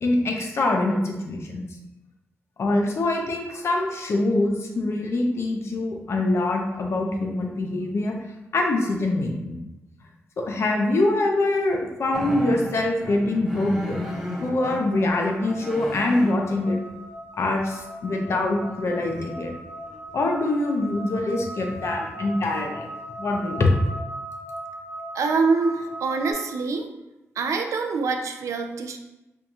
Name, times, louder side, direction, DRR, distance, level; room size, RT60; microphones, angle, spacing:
voice 1, 0.0-1.7 2.6-8.2 8.5-9.6 10.4-14.0 14.4-16.8 17.4-19.5 20.1-22.9 23.2-23.7, left 2 dB, 60° left, 2 dB, 0.6 m, -24 dB
sound 1, 12.1-14.8 15.3-16.4 19.2-19.3 19.9-20.1, equal, 5° right, 0.8 m, -33 dB
sound 2, 13.9-26.3, right 1 dB, 25° right, 1.2 m, -39 dB
voice 2, 25.1-26.9 27.4-29.0, right 4 dB, 80° right, 5 dB, 0.4 m, -25 dB
4.5 x 2.3 x 2.6 m, 0.98 s
cardioid pair, 90°, 5 cm